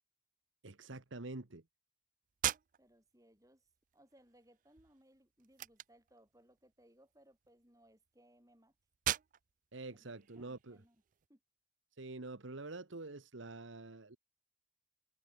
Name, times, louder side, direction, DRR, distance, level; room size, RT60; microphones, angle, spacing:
voice 1, 0.6-1.6 9.7-10.8 12.0-14.2, right 2 dB, 75° right, 1.3 m, -46 dB
sound 1, 2.3-11.3, right 12 dB, 40° right, 0.3 m, -44 dB
voice 2, 2.8-3.7 3.9-8.7 9.9-11.0 11.3-11.4, right 1 dB, 15° right, 6.1 m, -66 dB
head